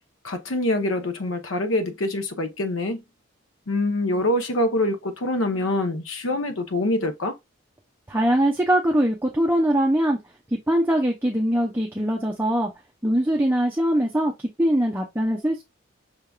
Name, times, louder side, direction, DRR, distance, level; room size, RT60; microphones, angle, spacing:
voice 1, 0.2-3.0 3.7-7.4, left 1 dB, 90° left, 0.8 m, -25 dB
voice 2, 8.1-10.2 10.7-12.7 13.0-14.3 14.6-15.6, right 1 dB, 10° right, 0.6 m, -22 dB
5.6 x 3.4 x 2.3 m
head